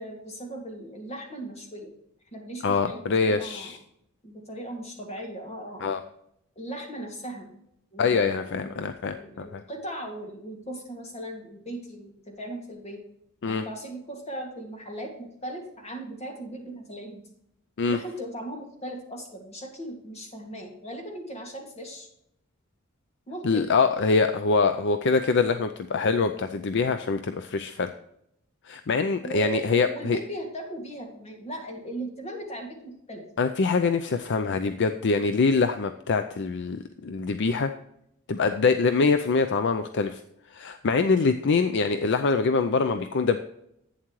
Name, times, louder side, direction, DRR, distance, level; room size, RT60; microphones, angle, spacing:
voice 1, 0.0-1.9 2.3-3.7 4.2-6.0 6.6-7.5 7.9-8.9 9.2-13.0 13.5-17.2 17.8-22.1 23.3-23.7 29.2-33.3, right 1 dB, 30° left, 2 dB, 2.2 m, -38 dB
voice 2, 2.6-3.8 5.8-6.0 8.0-9.6 13.4-13.6 17.8-18.0 23.4-27.9 28.6-30.2 33.4-37.7 38.3-40.2 40.5-43.4, left 4 dB, 55° left, 8 dB, 0.5 m, -24 dB
11.0 x 8.6 x 3.1 m, 0.76 s
head